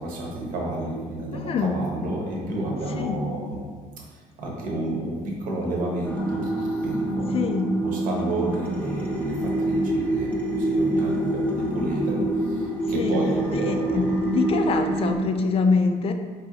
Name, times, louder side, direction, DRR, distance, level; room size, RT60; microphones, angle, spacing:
voice 1, 0.0-3.7 4.4-7.5 7.8-14.1, right 1 dB, 70° right, -2 dB, 0.9 m, -30 dB
voice 2, 1.3-1.7 2.9-3.2 7.3-7.7 13.0-13.3 13.5-16.1, left 5 dB, 40° left, 7 dB, 0.4 m, -25 dB
sound 1, 6.0-15.2, right 1 dB, 10° left, 0.7 m, -26 dB
4.2 x 2.7 x 2.8 m, 1.5 s
cardioid pair, 95°, 15 cm